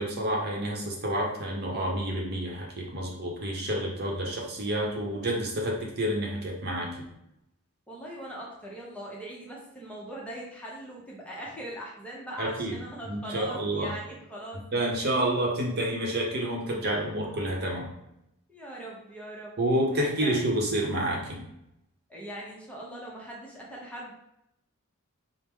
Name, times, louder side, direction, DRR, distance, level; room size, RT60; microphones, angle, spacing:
voice 1, 0.0-6.9 12.4-12.8 13.1-13.9 14.7-17.9 19.6-21.4, right 1 dB, 50° right, -1 dB, 0.8 m, -29 dB
voice 2, 7.9-14.6 18.5-19.6 19.9-20.4 22.1-24.1, right 1 dB, 5° left, -4 dB, 0.7 m, -41 dB
4.6 x 2.1 x 3.6 m, 0.82 s
head